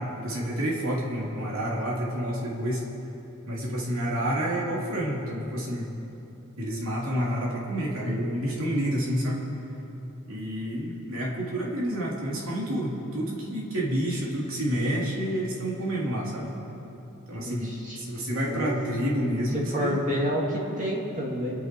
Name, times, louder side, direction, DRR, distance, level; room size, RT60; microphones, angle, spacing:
voice 1, 0.0-2.8 3.5-5.9 6.6-9.4 10.3-16.5 17.3-20.0, equal, 70° right, -3 dB, 3.1 m, -29 dB
voice 2, 17.4-18.0 18.4-18.8 19.5-21.5, equal, 35° right, -3 dB, 2.3 m, -29 dB
26.5 x 9.2 x 4.6 m, 3.0 s
head